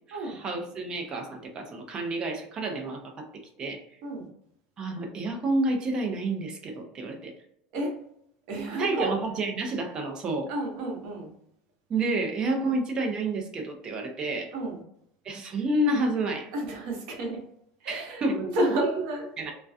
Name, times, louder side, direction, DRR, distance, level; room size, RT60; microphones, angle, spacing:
voice 1, 0.1-3.2 3.6-3.8 4.8-7.3 8.8-10.5 11.9-14.5 15.2-16.5 17.9-18.9 19.4-19.5, right 2 dB, 30° right, 3 dB, 0.6 m, -29 dB
voice 2, 8.5-9.1 10.5-11.3 12.6-12.7 14.5-14.8 16.5-17.4 17.8-19.3, right 1 dB, 65° right, 0 dB, 0.9 m, -31 dB
2.3 x 2.2 x 2.5 m, 0.73 s
supercardioid pair, 140°, 3 cm